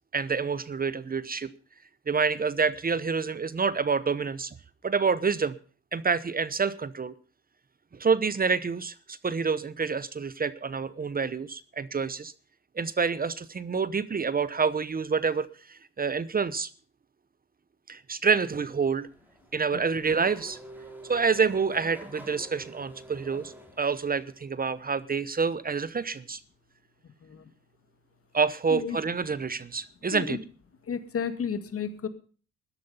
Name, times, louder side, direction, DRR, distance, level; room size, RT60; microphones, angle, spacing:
voice 1, 0.1-1.5 2.1-4.6 4.8-5.6 5.9-7.1 7.9-12.3 12.7-16.7 17.9-19.1 19.5-20.6 21.1-26.4 28.3-30.4, right 5 dB, 30° right, 17 dB, 0.9 m, -27 dB
Race car auto racing / Accelerating revving vroom, 18.9-24.4, right 1 dB, 5° right, 4.1 m, -48 dB
voice 2, 30.9-32.1, left 7 dB, 50° left, 10 dB, 2.1 m, -32 dB
14.0 x 12.0 x 5.5 m, 0.39 s
cardioid pair, 90°, 29 cm